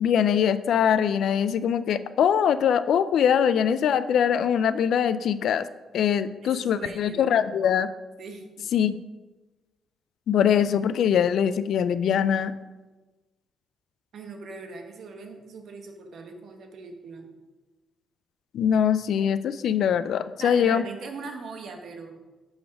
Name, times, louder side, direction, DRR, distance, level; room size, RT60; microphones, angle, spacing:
voice 1, 0.0-5.7 5.9-7.9 8.7-9.0 10.3-12.5 18.5-20.8, left 8 dB, 70° left, 14 dB, 0.3 m, -22 dB
voice 2, 6.4-7.3 8.2-8.7 14.1-17.3 20.4-22.2, right 4 dB, 60° right, 4 dB, 1.1 m, -40 dB
7.7 x 4.0 x 5.9 m, 1.2 s
cardioid pair, 145°, 0 cm